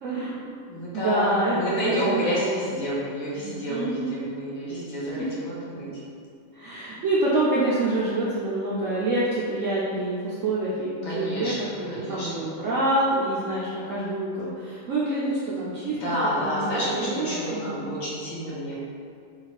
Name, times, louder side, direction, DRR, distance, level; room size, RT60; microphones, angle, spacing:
voice 1, 0.0-0.6 0.9-2.5 3.7-4.3 5.2-5.3 6.5-16.0 16.3-17.9, right 2 dB, 75° right, -7 dB, 0.7 m, -27 dB
voice 2, 0.7-5.9 11.0-12.5 15.9-18.8, equal, 60° left, -8 dB, 1.1 m, -29 dB
3.0 x 2.3 x 4.0 m, 2.3 s
omnidirectional pair, 1.8 m